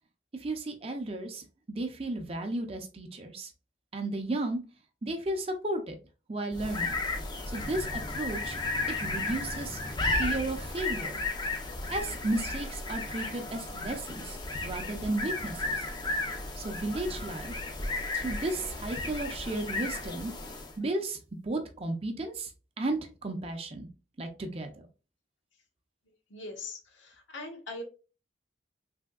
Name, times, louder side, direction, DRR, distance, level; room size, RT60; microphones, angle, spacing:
voice 1, 0.3-3.5 3.9-4.6 5.0-6.0 6.3-7.0 7.5-8.6 9.0-9.8 10.1-11.2 11.9-15.9 16.6-17.6 18.1-20.3 20.8-22.5 22.8-23.9 24.2-24.7, right 2 dB, 30° right, 5 dB, 0.5 m, -34 dB
sound 1, 6.5-20.8, left 2 dB, 20° left, 0.4 m, -34 dB
voice 2, 26.3-27.8, left 2 dB, 80° left, 2 dB, 0.9 m, -41 dB
3.4 x 2.7 x 2.2 m, 0.33 s
head